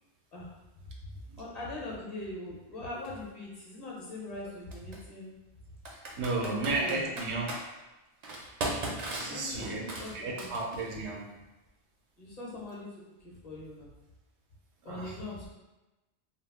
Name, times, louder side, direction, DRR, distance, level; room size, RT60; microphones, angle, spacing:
voice 1, 1.4-5.3 6.4-7.1 9.3-10.5 12.2-12.9 13.2-13.9 14.8-15.5, left 2 dB, 40° left, -4 dB, 0.7 m, -41 dB
Computer keyboard, 3.0-3.1 4.7-5.0 5.8-7.6 8.2-10.9, right 2 dB, 55° right, 0.5 m, -37 dB
voice 2, 5.9-7.5 9.2-9.8 10.1-11.3 14.8-15.2, right 3 dB, 90° right, 0 dB, 0.9 m, -33 dB
2.3 x 2.0 x 3.5 m, 1.0 s
omnidirectional pair, 1.1 m